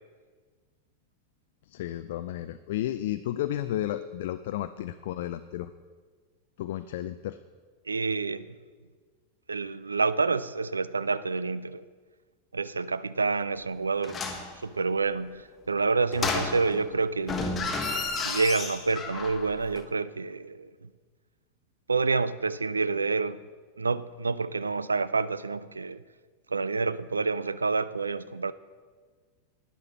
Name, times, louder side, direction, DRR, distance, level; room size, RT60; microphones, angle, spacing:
voice 1, 1.7-5.7 6.6-7.4, left 12 dB, 55° left, 0.4 m, -32 dB
voice 2, 7.9-8.5 9.5-11.8 12.5-14.2 14.6-17.5 18.1-20.9 21.9-23.4 23.8-26.0 26.5-28.5, right 4 dB, 75° right, 0.4 m, -28 dB
sound 1, 14.0-14.5 16.1-16.9 17.2-19.5 19.8-19.9, left 3 dB, 20° left, 1.3 m, -31 dB
11.5 x 10.0 x 4.3 m
figure-of-eight pair, 90°, 0 cm